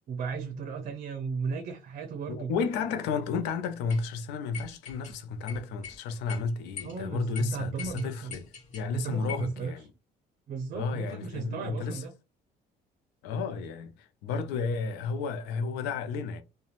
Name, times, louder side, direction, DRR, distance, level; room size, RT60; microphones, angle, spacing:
voice 1, 0.0-2.5 6.8-8.3 8.9-9.9 10.5-12.1, right 5 dB, 50° right, 0.5 m, -35 dB
voice 2, 2.3-8.4 8.7-9.9 10.7-12.0 13.2-16.4, left 4 dB, 90° left, 0.5 m, -32 dB
sound 1, 3.9-4.0 4.5-5.1 5.5-6.0 6.3-6.4 6.8-7.0 7.3-7.4 7.8-8.9 9.3-9.5, left 6 dB, 45° left, 1.0 m, -42 dB
2.5 x 2.2 x 2.9 m
cardioid pair, 110°, 17 cm